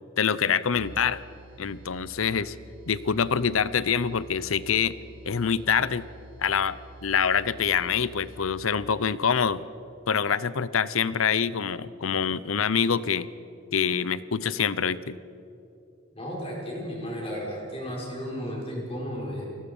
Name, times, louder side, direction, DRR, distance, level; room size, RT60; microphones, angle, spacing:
voice 1, 0.2-1.2 1.6-2.6 2.9-5.0 5.3-6.1 6.4-9.6 10.1-13.3 13.7-15.2, left 6 dB, 85° left, 17 dB, 0.7 m, -25 dB
sound 1, 0.7-8.7, right 1 dB, 60° right, 2.0 m, -48 dB
voice 2, 16.1-19.5, equal, 30° left, -2 dB, 5.5 m, -34 dB
29.0 x 19.5 x 5.5 m, 2.8 s
head